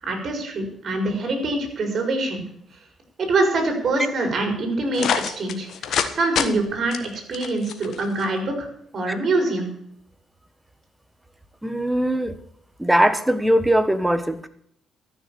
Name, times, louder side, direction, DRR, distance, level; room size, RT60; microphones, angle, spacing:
voice 1, 0.0-2.4 3.2-5.7 6.1-8.7 8.9-9.7, right 2 dB, 50° right, 4 dB, 5.1 m, -24 dB
sound 1, 4.9-6.1 6.4-6.5 6.9-8.3, left 8 dB, 70° left, 1.4 m, -25 dB
voice 2, 11.6-12.4 12.8-14.5, right 1 dB, 5° right, 11 dB, 1.3 m, -20 dB
13.5 x 6.5 x 8.5 m, 0.70 s
cardioid pair, 90°, 0 cm